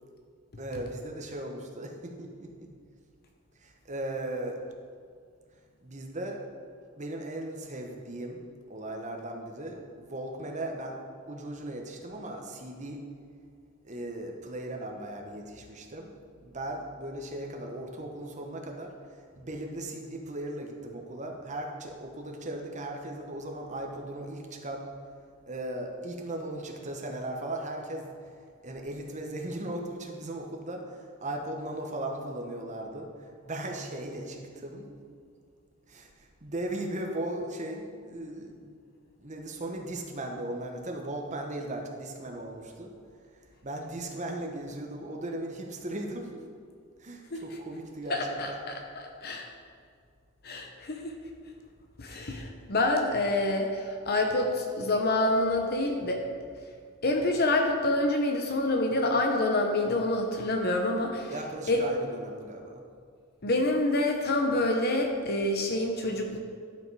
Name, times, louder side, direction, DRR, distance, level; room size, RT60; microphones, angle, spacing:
voice 1, 0.6-2.7 3.6-4.6 5.8-6.4 7.0-8.4 8.7-11.0 11.3-13.0 13.8-16.1 16.4-18.9 19.4-24.9 25.5-28.1 28.6-33.1 33.5-35.0 35.9-36.1 36.4-38.7 39.2-42.9 43.6-46.4 47.0-48.6 61.3-62.8, right 1 dB, 35° right, 2 dB, 1.1 m, -37 dB
voice 2, 48.1-49.5 50.4-51.1 52.0-56.2 57.0-61.3 61.7-61.8 63.4-66.4, left 2 dB, 50° left, 2 dB, 0.8 m, -27 dB
11.5 x 5.2 x 4.8 m, 2.1 s
head